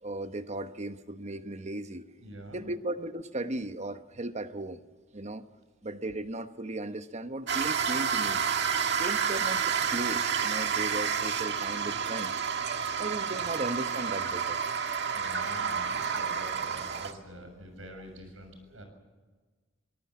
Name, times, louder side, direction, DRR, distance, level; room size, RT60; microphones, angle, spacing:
voice 1, 0.0-2.0 2.5-4.8 5.1-5.4 5.8-8.4 9.0-12.3 13.0-14.8, right 2 dB, 35° right, 1.1 m, -36 dB
voice 2, 2.2-2.7 15.1-18.8, right 1 dB, 85° right, 7.2 m, -45 dB
sound 1, 7.5-17.1, right 7 dB, 60° right, 1.7 m, -30 dB
23.5 x 20.0 x 7.3 m
head